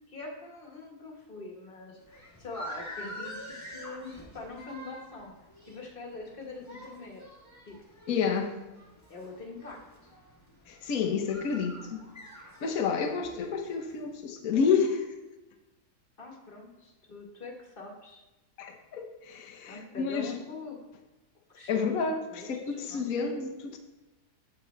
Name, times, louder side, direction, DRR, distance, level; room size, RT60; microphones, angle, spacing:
voice 1, 0.1-5.3 5.7-7.2 7.7-7.8 9.1-9.8 16.2-18.2 19.7-20.8 21.5-21.9 22.3-23.1, left 3 dB, 35° left, 1 dB, 1.5 m, -43 dB
sound 1, 2.0-14.2, equal, 10° left, 1.3 m, -47 dB
voice 2, 8.1-8.5 10.7-12.0 12.6-15.0 18.6-20.4 21.7-23.8, left 6 dB, 65° left, 3 dB, 1.4 m, -29 dB
14.0 x 5.3 x 3.2 m, 1.1 s
omnidirectional pair, 1.7 m